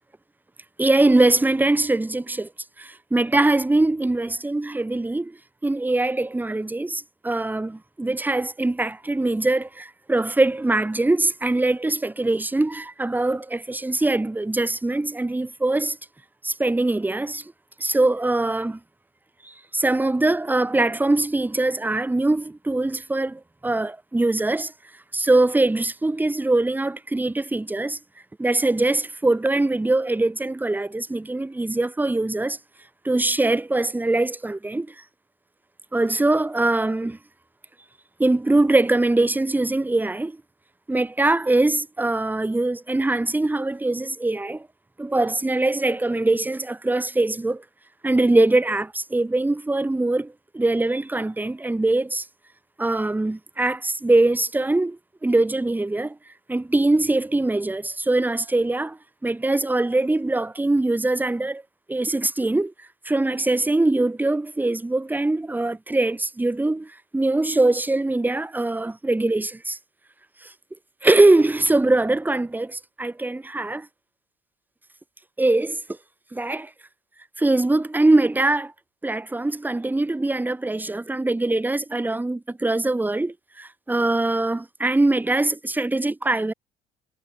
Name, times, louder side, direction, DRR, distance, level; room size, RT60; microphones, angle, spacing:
voice 1, 0.8-2.5 2.8-5.4 5.6-16.0 16.4-17.5 17.8-18.8 19.4-24.7 25.1-28.0 28.4-32.6 33.0-34.9 35.9-37.2 38.2-40.4 40.9-44.7 45.0-47.6 48.0-52.3 52.8-56.2 56.5-61.6 61.9-69.8 70.4-70.5 71.0-73.9 75.4-75.8 76.3-76.7 77.4-78.7 79.0-86.5, right 2 dB, 10° right, 1.1 m, -22 dB
supercardioid pair, 70°, 18 cm